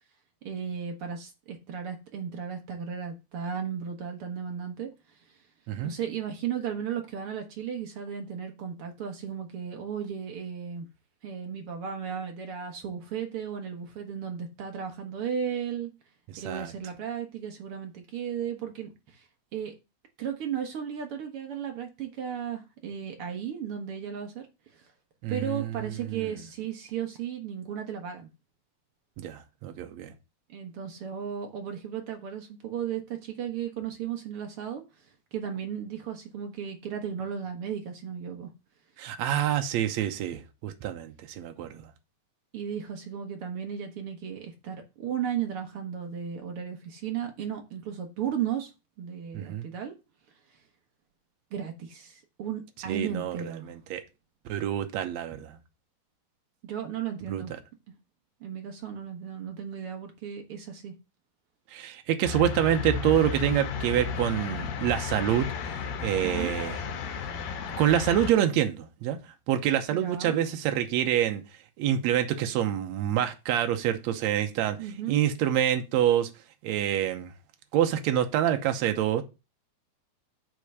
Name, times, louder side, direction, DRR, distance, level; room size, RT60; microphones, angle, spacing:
voice 1, 0.4-4.9 5.8-10.9 11.2-15.9 16.4-19.2 19.5-19.7 20.2-24.5 24.7-24.9 25.3-28.3 30.5-35.1 35.3-38.5 42.5-48.7 49.0-49.9 51.5-53.7 56.6-57.5 58.4-60.9 66.2-66.5 69.9-70.4 74.8-75.2, right 8 dB, 60° right, 1.4 m, -35 dB
voice 2, 16.3-16.7 25.2-25.7 26.1-26.3 29.2-30.1 39.0-41.8 49.3-49.7 52.9-53.4 53.7-54.0 54.5-55.5 57.3-57.4 61.7-65.5 66.0-66.8 67.8-69.2 69.5-71.4 71.8-74.8 75.1-76.3 76.6-77.3 77.7-79.2, right 11 dB, 85° right, 1.5 m, -26 dB
sound 1, 62.2-68.3, left 5 dB, 70° left, 2.8 m, -33 dB
8.2 x 3.8 x 6.7 m
omnidirectional pair, 4.3 m